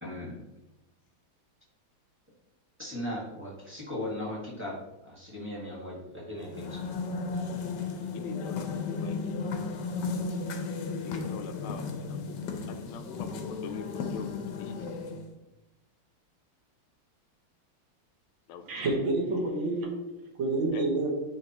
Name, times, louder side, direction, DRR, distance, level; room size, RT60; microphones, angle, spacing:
voice 1, 0.0-0.4 2.8-6.8, left 1 dB, 5° right, -5 dB, 1.5 m, -38 dB
sound 1, 6.4-15.3, left 4 dB, 70° left, 1.3 m, -34 dB
voice 2, 8.1-9.3 11.0-12.4 12.7-14.3 14.6-14.9 18.5-18.9 20.7-20.8, left 6 dB, 85° left, 9 dB, 1.5 m, -43 dB
voice 3, 18.6-19.9 20.4-21.1, right 2 dB, 70° right, -1 dB, 2.0 m, -28 dB
9.7 x 3.3 x 3.0 m, 0.96 s
omnidirectional pair, 2.3 m